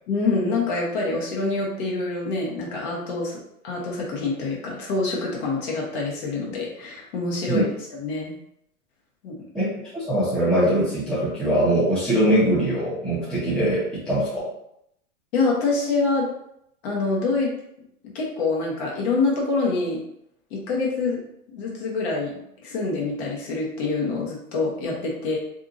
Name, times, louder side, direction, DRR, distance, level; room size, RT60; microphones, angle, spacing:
voice 1, 0.1-3.4 3.6-7.7 8.0-8.3 9.2-9.4 15.3-16.3 16.8-17.5 18.0-20.0 20.5-21.2 21.5-25.4, left 3 dB, 45° left, -3 dB, 0.9 m, -26 dB
voice 2, 9.5-14.5, right 1 dB, ahead, -10 dB, 0.7 m, -22 dB
2.7 x 2.5 x 2.5 m, 0.76 s
hypercardioid pair, 125°, 44 cm